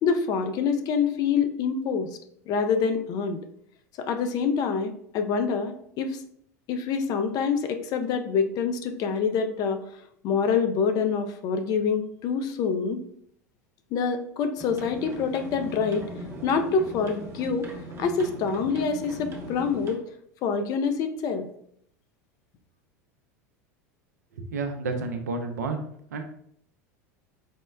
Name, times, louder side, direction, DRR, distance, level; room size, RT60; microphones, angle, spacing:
voice 1, 0.0-2.1 2.5-3.4 4.0-6.2 6.7-9.8 10.2-13.0 13.9-16.0 16.4-17.7 18.0-20.0 20.4-21.5, left 5 dB, 45° left, 8 dB, 0.4 m, -26 dB
sound 1, 14.6-20.0, right 1 dB, 30° right, 0.7 m, -39 dB
voice 2, 24.4-25.8 26.1-26.2, right 3 dB, 80° right, 5 dB, 0.5 m, -30 dB
4.3 x 2.0 x 2.3 m, 0.67 s
hypercardioid pair, 85°, 9 cm